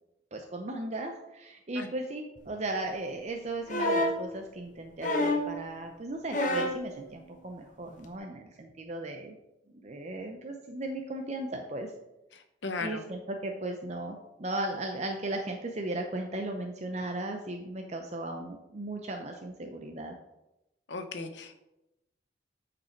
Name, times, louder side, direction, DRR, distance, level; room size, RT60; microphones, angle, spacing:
voice 1, 0.3-9.4 9.7-11.9 12.8-20.2, right 2 dB, 40° right, 3 dB, 0.7 m, -36 dB
sound 1, 3.7-4.2 5.0-5.6 6.3-6.8 8.0-8.1, left 1 dB, 45° left, 0.9 m, -27 dB
voice 2, 12.3-13.0 20.9-21.6, left 3 dB, 70° left, 7 dB, 1.0 m, -37 dB
8.8 x 5.2 x 4.4 m, 0.94 s
head